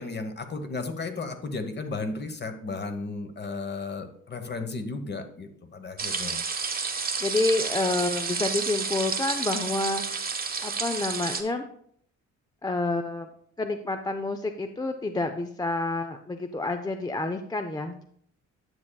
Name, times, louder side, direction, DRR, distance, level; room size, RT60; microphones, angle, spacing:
voice 1, 0.0-6.4, left 3 dB, 35° left, 7 dB, 1.1 m, -34 dB
sound 1, 6.0-11.4, right 5 dB, 30° right, 1.1 m, -30 dB
voice 2, 7.2-10.0 10.6-11.7 12.6-13.3 13.6-18.0, left 2 dB, 15° left, 7 dB, 0.4 m, -28 dB
9.5 x 7.2 x 2.3 m, 0.65 s
cardioid pair, 90°, 30 cm